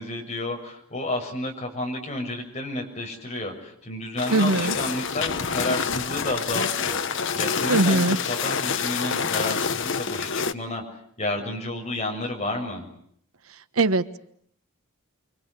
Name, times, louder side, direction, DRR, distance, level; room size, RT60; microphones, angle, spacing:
voice 1, 0.0-10.8 11.2-12.8, left 1 dB, 30° left, 2 dB, 7.2 m, -31 dB
sound 1, 4.2-10.5, left 6 dB, 60° left, 1.2 m, -27 dB
voice 2, 4.3-4.8 7.7-8.2 13.8-14.2, right 2 dB, 85° right, 12 dB, 1.2 m, -21 dB
29.0 x 25.0 x 8.3 m, 0.68 s
head